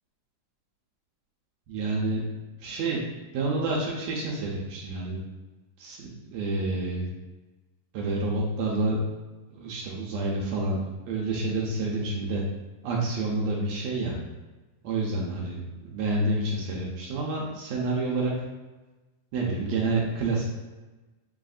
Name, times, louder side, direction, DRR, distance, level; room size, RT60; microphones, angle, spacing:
voice 1, 1.7-2.2 2.6-3.0 3.3-5.2 5.8-7.1 7.9-9.0 9.5-12.4 12.8-14.2 14.8-18.3 19.3-20.4, right 2 dB, 75° right, -3 dB, 1.8 m, -28 dB
7.5 x 2.6 x 2.4 m, 1.2 s
omnidirectional pair, 3.6 m